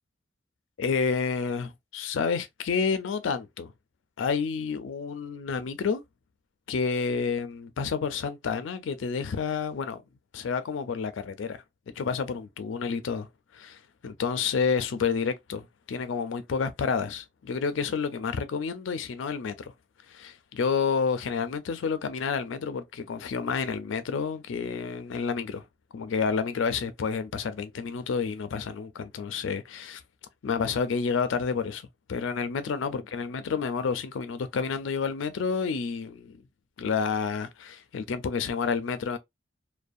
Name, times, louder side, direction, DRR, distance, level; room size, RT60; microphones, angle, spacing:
voice 1, 0.8-3.7 4.2-6.0 6.7-10.0 10.3-11.6 12.0-13.3 13.5-19.7 20.1-25.6 25.9-30.0 30.4-31.8 32.1-36.4 36.8-39.2, left 5 dB, 85° left, 0.4 m, -29 dB
2.6 x 2.2 x 2.3 m
head